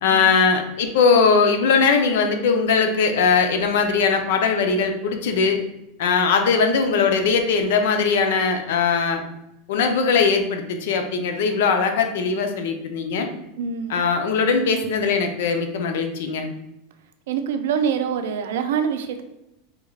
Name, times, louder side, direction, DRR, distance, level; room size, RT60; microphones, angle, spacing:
voice 1, 0.0-5.6 6.0-9.2 9.7-13.3 13.9-16.5, left 5 dB, 75° left, 5 dB, 0.5 m, -20 dB
voice 2, 13.6-14.0 17.3-19.2, right 7 dB, 80° right, 8 dB, 0.4 m, -25 dB
3.5 x 2.3 x 3.2 m, 0.87 s
supercardioid pair, 155°, 0 cm